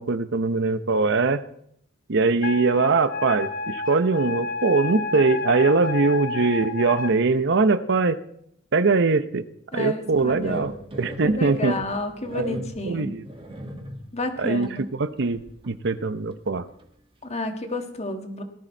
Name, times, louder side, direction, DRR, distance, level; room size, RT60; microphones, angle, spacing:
voice 1, 0.0-1.4 2.1-8.2 8.7-9.4 9.7-10.7 11.0-11.8 12.3-13.2 14.4-16.7, right 3 dB, 60° right, 12 dB, 0.7 m, -22 dB
Wind instrument woodwind instrument, 2.4-7.1, left 4 dB, 50° left, 1.5 m, -31 dB
voice 2, 9.7-10.7 11.2-13.1 14.1-14.8 17.2-18.4, left 2 dB, 35° left, 6 dB, 1.6 m, -30 dB
sound 1, 10.1-14.3 14.6-14.8 15.2-16.0 16.3-16.4 16.8-16.9, right 1 dB, 30° right, 2.0 m, -39 dB
18.5 x 13.0 x 4.5 m, 0.70 s
head